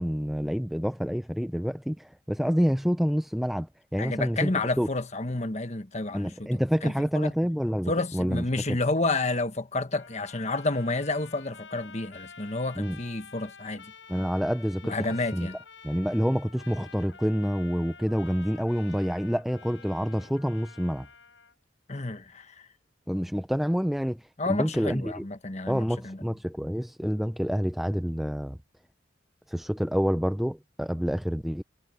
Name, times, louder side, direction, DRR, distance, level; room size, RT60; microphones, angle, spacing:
voice 1, 0.0-3.7 3.9-4.5 4.8-4.9 6.1-8.8 12.8-13.0 14.1-15.0 15.3-15.5 15.8-21.1 23.1-24.2 24.5-25.2 25.7-28.6 29.5-31.6, equal, ahead, 0.4 m, -27 dB
voice 2, 4.0-7.3 7.9-13.9 14.9-15.6 21.9-22.5 24.4-26.2, left 2 dB, 35° left, 1.4 m, -30 dB
Trumpet, 9.9-21.5, left 5 dB, 75° left, 6.9 m, -49 dB
head